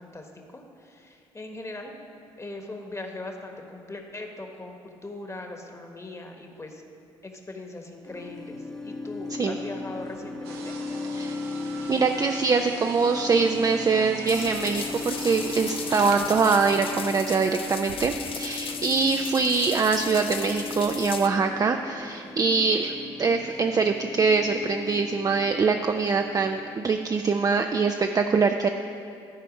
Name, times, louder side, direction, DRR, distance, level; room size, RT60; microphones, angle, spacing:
voice 1, 0.0-2.0 2.4-4.8 5.0-6.8 7.2-10.7, left 2 dB, 20° left, 3 dB, 1.3 m, -40 dB
sound 1, 8.0-27.6, left 3 dB, 5° left, 0.8 m, -37 dB
sound 2, 10.4-17.5 17.9-18.1, right 5 dB, 85° right, 0.6 m, -43 dB
voice 2, 11.9-28.7, right 4 dB, 30° right, 5 dB, 0.4 m, -23 dB
sound 3, 14.3-21.3, left 6 dB, 45° left, 0.6 m, -37 dB
12.5 x 4.4 x 5.2 m, 2.5 s
hypercardioid pair, 55°, 13 cm